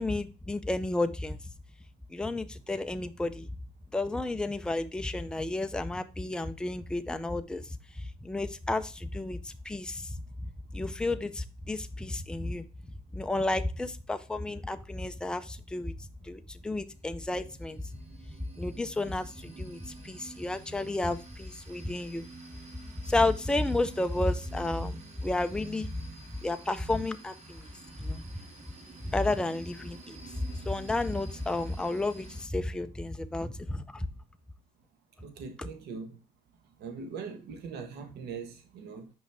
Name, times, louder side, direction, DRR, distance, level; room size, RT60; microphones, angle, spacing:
voice 1, 0.0-1.4 2.1-3.5 3.9-10.2 10.7-12.7 13.1-17.8 18.6-22.3 23.0-26.0 26.4-27.7 28.0-28.2 29.1-30.4 30.7-34.1, left 2 dB, 5° left, 0.5 m, -32 dB
sound 1, 16.6-32.4, right 3 dB, 40° right, 2.4 m, -49 dB
voice 2, 35.2-36.2 36.8-39.1, right 5 dB, 75° right, 1.5 m, -41 dB
6.2 x 5.3 x 3.5 m
cardioid pair, 110°, 17 cm